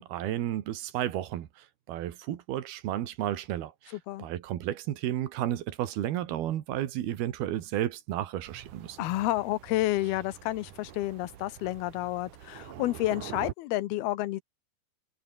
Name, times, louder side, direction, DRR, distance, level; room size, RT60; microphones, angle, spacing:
voice 1, 0.0-9.0, right 12 dB, 85° right, 3.5 m, -32 dB
Thunder, 8.4-13.5, right 11 dB, 60° right, 2.9 m, -45 dB
voice 2, 9.0-14.4, left 16 dB, 90° left, 3.0 m, -30 dB
omnidirectional pair, 4.3 m